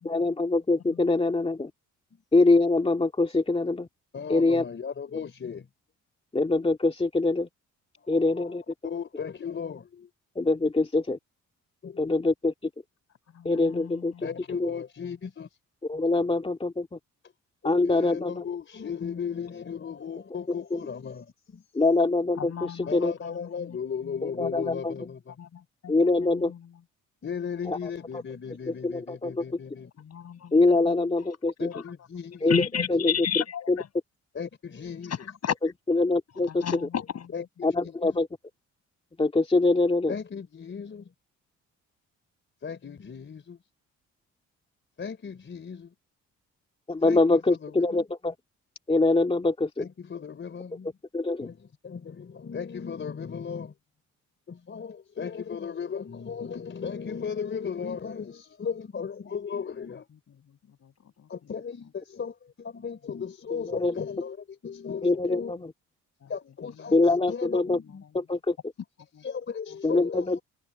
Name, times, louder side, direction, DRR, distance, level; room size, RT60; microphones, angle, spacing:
voice 1, 0.0-1.7 2.3-3.9 4.3-4.6 6.3-7.5 8.1-8.6 10.4-11.2 12.0-12.5 13.4-14.1 14.5-14.7 15.9-17.0 17.6-18.4 20.5-20.8 21.7-22.4 22.9-23.1 24.2-24.9 25.9-26.5 27.7-27.9 28.7-29.4 30.5-31.7 32.4-32.6 32.9-33.0 35.9-36.6 37.6-38.3 39.2-40.2 46.9-48.3 48.9-49.9 51.1-51.5 63.7-64.0 65.0-65.7 66.9-67.8 68.1-68.6 69.8-70.4, left 3 dB, 20° left, 2.0 m, -24 dB
voice 2, 4.1-5.7 8.0-8.5 8.8-10.1 11.8-12.2 14.2-15.5 17.6-21.6 22.9-25.3 27.2-29.9 31.6-32.5 34.3-35.1 37.3-37.4 37.8-38.2 40.1-41.1 42.6-43.6 45.0-45.9 47.0-48.0 49.8-50.9 51.4-51.6 51.8-53.7 54.5-60.1 61.3-64.4 64.6-65.5 66.3-67.0 67.3-68.0 69.2-70.4, left 6 dB, 40° left, 3.7 m, -36 dB
voice 3, 13.3-14.4 22.4-24.8 25.4-25.9 26.2-26.8 27.4-28.3 30.0-31.2 31.7-33.9 35.0-35.6 36.4-37.5 55.2-55.9 60.1-61.9 63.0-63.2 66.2-67.2 67.6-68.3 69.1-69.3 69.7-70.0, left 8 dB, 55° left, 7.0 m, -37 dB
cardioid pair, 90°, 30 cm